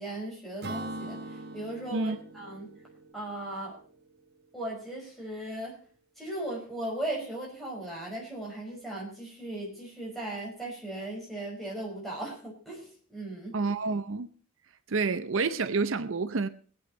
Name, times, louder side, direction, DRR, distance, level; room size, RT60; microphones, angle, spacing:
voice 1, 0.0-2.7 3.1-3.8 4.5-5.8 6.2-13.6, right 1 dB, ahead, 5.4 m, -37 dB
Acoustic guitar / Strum, 0.6-4.2, right 2 dB, 45° right, 1.1 m, -42 dB
voice 2, 13.5-14.3 14.9-16.5, right 4 dB, 70° right, 0.6 m, -28 dB
21.5 x 8.9 x 4.3 m
head